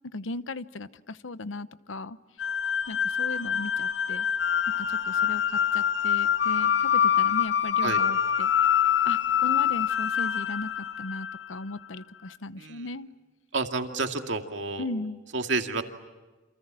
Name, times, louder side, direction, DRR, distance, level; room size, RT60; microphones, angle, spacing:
voice 1, 0.1-2.2 2.9-4.3 4.8-8.5 9.0-13.1 14.8-15.2, left 2 dB, 85° left, 14 dB, 0.9 m, -37 dB
sound 1, 2.4-11.6, left 9 dB, 70° left, 1.3 m, -25 dB
voice 2, 13.5-14.9 15.3-15.8, right 3 dB, 70° right, 5 dB, 2.3 m, -29 dB
29.0 x 27.0 x 7.6 m, 1.2 s
head